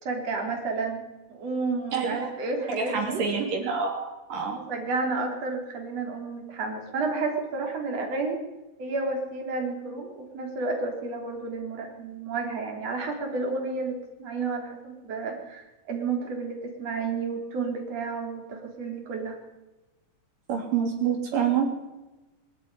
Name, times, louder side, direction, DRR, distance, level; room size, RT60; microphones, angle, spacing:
voice 1, 0.0-1.0 1.3-3.2 3.6-3.7 4.6-8.4 8.8-19.4, right 3 dB, 50° right, 1 dB, 4.5 m, -31 dB
voice 2, 1.9-2.3 2.8-4.6 20.5-21.7, right 6 dB, 80° right, 1 dB, 4.8 m, -27 dB
23.0 x 12.5 x 9.8 m, 1.0 s
omnidirectional pair, 3.8 m